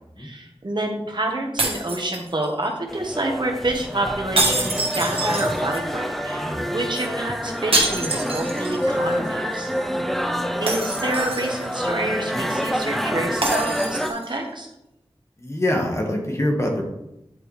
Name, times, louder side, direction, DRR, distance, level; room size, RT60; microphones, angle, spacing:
voice 1, 0.2-9.7 10.6-14.7, right 1 dB, 55° right, 2 dB, 1.3 m, -28 dB
sound 1, 1.6-2.7 4.4-5.9 7.7-8.9 9.3-9.4 10.7-11.7 13.4-14.4, right 2 dB, 80° right, 1.4 m, -26 dB
sound 2, 2.9-14.1, equal, ahead, 0.5 m, -27 dB
voice 2, 15.4-16.8, left 1 dB, 30° left, 1 dB, 1.6 m, -24 dB
10.0 x 4.8 x 3.3 m, 0.88 s
wide cardioid pair, 60°, 10 cm